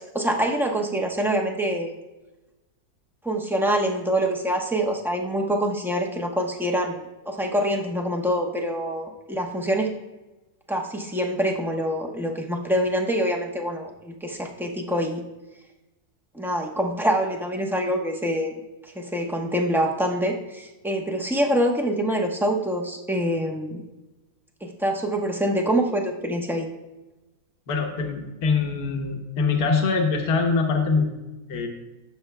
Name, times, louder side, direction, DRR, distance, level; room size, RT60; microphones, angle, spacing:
voice 1, 0.1-1.9 3.2-9.9 10.7-15.2 16.3-18.5 18.9-23.8 24.6-26.7, equal, ahead, 1 dB, 0.5 m, -25 dB
voice 2, 27.7-31.1 31.5-31.7, left 4 dB, 75° left, 2 dB, 1.5 m, -23 dB
15.5 x 7.1 x 2.2 m, 1.1 s
omnidirectional pair, 1.7 m